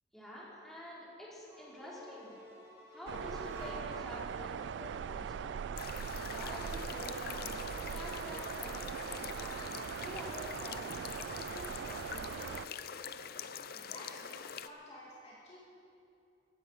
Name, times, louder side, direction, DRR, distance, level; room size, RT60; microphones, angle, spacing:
voice 1, 0.1-2.3 2.9-5.6 6.3-12.6, equal, ahead, -7 dB, 4.2 m, -48 dB
sound 1, 1.4-4.1, left 1 dB, 15° right, 3.0 m, -52 dB
sound 2, 3.1-12.7, right 7 dB, 70° right, 0.3 m, -41 dB
sound 3, 5.8-14.7, left 7 dB, 55° left, 0.6 m, -44 dB
voice 2, 13.7-15.6, left 1 dB, 35° left, -5 dB, 2.1 m, -52 dB
16.0 x 15.0 x 5.6 m, 2.7 s
head